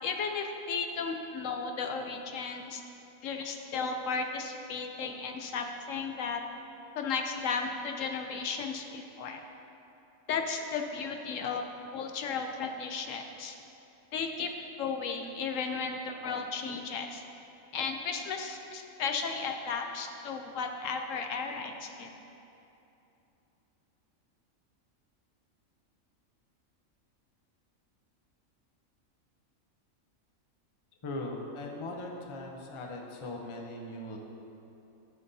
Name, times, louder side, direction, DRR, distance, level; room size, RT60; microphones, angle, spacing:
voice 1, 0.0-2.8 3.2-6.4 7.0-9.4 10.3-11.6 11.9-13.6 14.1-14.5 14.8-17.2 17.7-22.1, left 5 dB, 75° left, 4 dB, 1.0 m, -34 dB
voice 2, 31.0-34.2, left 2 dB, 30° left, 1 dB, 0.6 m, -39 dB
13.0 x 5.8 x 2.7 m, 2.9 s
omnidirectional pair, 1.4 m